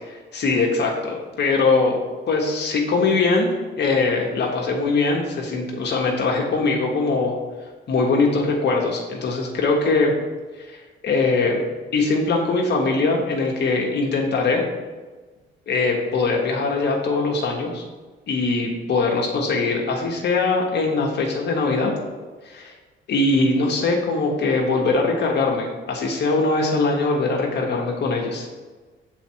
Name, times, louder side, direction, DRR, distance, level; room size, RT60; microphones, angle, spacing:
voice 1, 0.0-2.0 2.3-7.3 7.9-10.1 10.6-11.7 11.9-14.6 15.7-17.8 18.3-21.9 22.4-22.7 23.1-28.5, left 3 dB, 60° left, 0 dB, 1.2 m, -21 dB
6.9 x 4.2 x 4.6 m, 1.3 s
cardioid pair, 90°, 20 cm